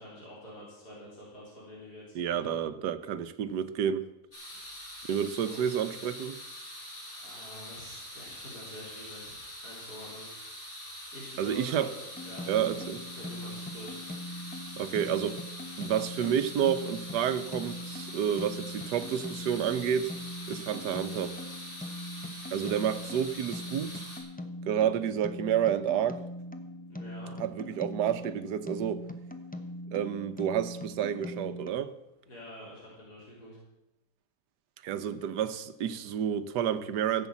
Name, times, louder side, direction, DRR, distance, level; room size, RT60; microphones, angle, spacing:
voice 1, 0.0-2.6 4.6-5.0 5.4-5.6 7.2-10.3 11.1-14.0 26.9-27.3 32.3-33.6, equal, 70° left, 4.2 m, -47 dB
voice 2, 2.1-4.0 5.1-6.4 11.4-11.9 12.5-13.0 14.8-15.4 15.8-20.1 20.5-21.3 22.5-24.0 24.7-26.2 27.4-29.0 29.9-31.9 34.8-37.3, right 9 dB, 80° right, 1.4 m, -30 dB
sound 1, 4.3-24.2, equal, 30° left, 4.3 m, -44 dB
sound 2, 12.1-31.7, left 1 dB, 10° left, 0.5 m, -41 dB
14.5 x 8.2 x 7.2 m
omnidirectional pair, 1.8 m